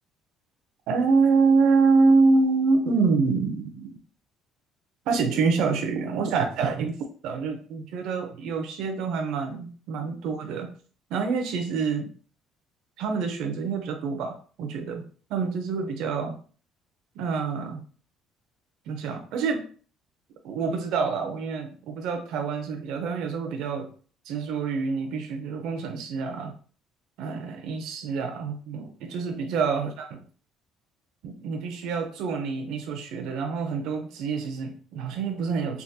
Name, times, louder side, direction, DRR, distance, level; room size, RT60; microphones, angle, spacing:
voice 1, 0.9-3.9 5.1-6.9 7.2-10.7 11.1-12.1 13.0-15.0 15.3-16.3 17.2-17.8 18.9-19.6 20.4-23.9 24.3-26.5 27.2-30.2 31.2-35.8, right 4 dB, 75° right, 5 dB, 0.5 m, -26 dB
3.5 x 2.3 x 2.7 m, 0.41 s
cardioid pair, 125°, 0 cm